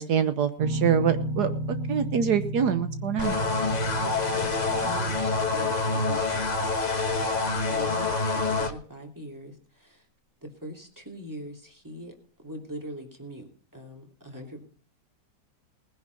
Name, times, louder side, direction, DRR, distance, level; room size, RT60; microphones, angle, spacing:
voice 1, 0.0-1.5 1.9-3.3, right 8 dB, 70° right, 10 dB, 1.5 m, -25 dB
sound 1, 0.6-6.2, right 1 dB, 40° right, 1.2 m, -33 dB
sound 2, 3.2-8.7, left 3 dB, 30° left, 1.2 m, -26 dB
voice 2, 3.9-6.7 7.0-10.0 10.4-14.6, equal, 10° right, 3 dB, 2.9 m, -42 dB
19.5 x 10.5 x 4.0 m, 0.42 s
omnidirectional pair, 1.8 m